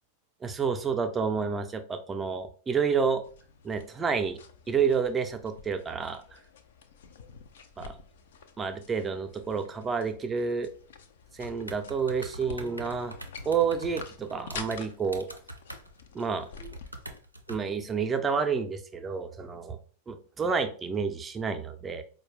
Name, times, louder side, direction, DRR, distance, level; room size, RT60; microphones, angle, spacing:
voice 1, 0.4-3.2 3.6-4.4 4.7-6.4 7.8-8.0 8.6-10.7 11.3-13.2 13.5-15.3 16.1-16.8 17.5-19.8 20.1-22.0, right 5 dB, 20° right, 7 dB, 0.5 m, -29 dB
sound 1, 3.2-17.2, left 5 dB, 60° left, 0.4 m, -48 dB
sound 2, 11.4-17.6, right 1 dB, 90° right, 0.4 m, -43 dB
4.4 x 2.2 x 3.1 m, 0.42 s
figure-of-eight pair, 90°, 0 cm